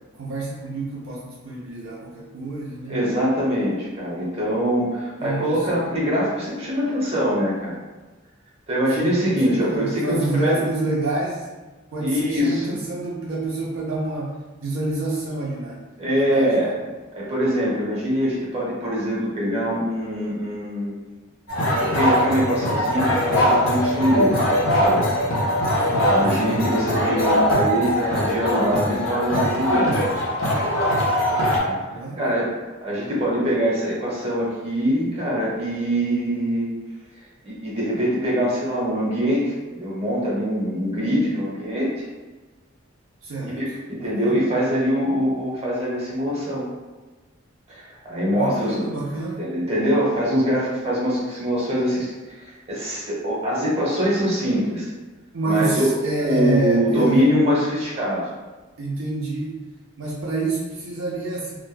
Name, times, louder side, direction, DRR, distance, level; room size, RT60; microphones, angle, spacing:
voice 1, 0.2-3.0 5.2-5.8 9.0-11.5 11.9-15.9 16.1-16.5 25.8-26.1 31.3-32.2 43.2-43.6 44.0-44.4 48.3-49.5 55.3-57.2 58.8-59.5 60.0-61.6, right 2 dB, 70° right, -4 dB, 0.4 m, -28 dB
voice 2, 2.9-7.8 8.7-10.6 12.0-12.8 16.0-16.8 17.1-21.0 21.8-24.3 24.8-25.1 26.1-29.9 31.6-32.5 32.8-36.7 37.4-42.1 43.5-46.6 47.7-48.8 49.4-54.9 55.4-58.3, equal, 30° right, -6 dB, 0.8 m, -23 dB
sound 1, 21.5-31.6, equal, 85° left, 0.6 m, -21 dB
2.2 x 2.0 x 3.1 m, 1.2 s
head